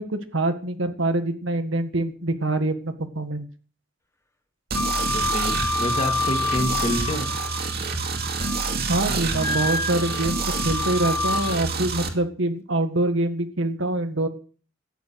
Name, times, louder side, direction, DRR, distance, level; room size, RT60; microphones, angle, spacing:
voice 1, 0.0-3.5 8.9-10.4 10.6-14.3, right 2 dB, 80° right, 8 dB, 1.8 m, -25 dB
voice 2, 4.7-7.3 9.1-9.6, equal, 35° left, 3 dB, 2.8 m, -29 dB
Wind instrument woodwind instrument, 4.7-7.7 8.1-8.9 9.4-11.6, left 3 dB, 15° left, 1.4 m, -28 dB
sound 1, 4.7-12.1, right 4 dB, 55° right, 2.4 m, -28 dB
14.0 x 9.6 x 6.4 m, 0.41 s
head